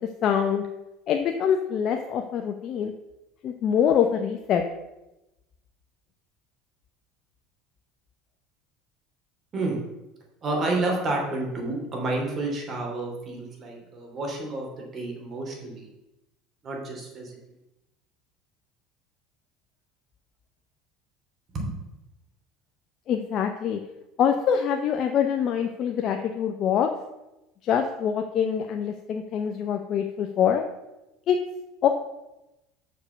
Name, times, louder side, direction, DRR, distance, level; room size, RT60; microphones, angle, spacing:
voice 1, 0.2-0.6 1.1-2.9 3.4-4.6 23.1-23.8 24.2-26.9 27.6-30.6 31.3-31.4 31.8-31.9, left 8 dB, 50° left, 5 dB, 0.7 m, -24 dB
voice 2, 10.4-15.9 16.6-17.4 21.5-21.7, right 2 dB, 35° right, 0 dB, 3.0 m, -30 dB
6.6 x 5.3 x 6.8 m, 0.96 s
supercardioid pair, 100°, 0 cm